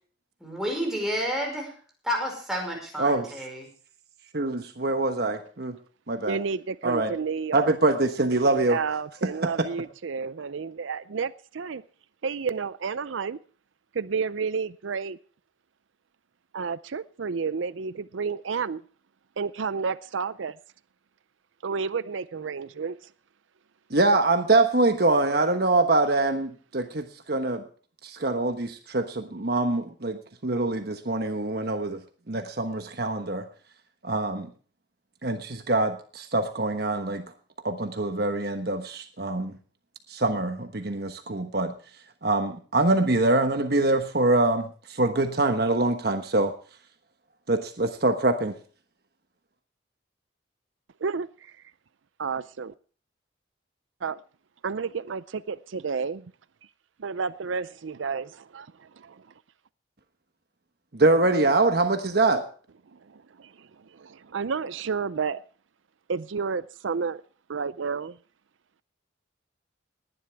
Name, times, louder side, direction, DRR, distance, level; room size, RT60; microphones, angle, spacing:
voice 1, 0.4-1.7 2.0-3.7, equal, 5° right, 0 dB, 5.3 m, -30 dB
voice 2, 3.0-3.3 4.3-5.8 6.1-6.4 6.8-7.1 7.5-8.8 9.4-9.5 23.9-27.6 28.0-32.0 32.3-33.5 34.0-34.5 35.2-37.2 37.6-39.5 40.1-41.7 42.2-46.5 47.5-48.5 60.9-62.4, right 2 dB, 55° right, 7 dB, 1.2 m, -24 dB
voice 3, 6.3-7.8 8.7-11.8 12.2-13.4 13.9-15.2 16.5-18.8 19.4-20.5 21.6-23.0 51.0-51.5 52.2-52.7 54.0-54.2 54.6-56.3 57.0-59.2 62.9-65.4 66.1-67.2 67.5-68.2, right 5 dB, 85° right, 16 dB, 0.5 m, -31 dB
20.0 x 11.0 x 3.5 m, 0.42 s
head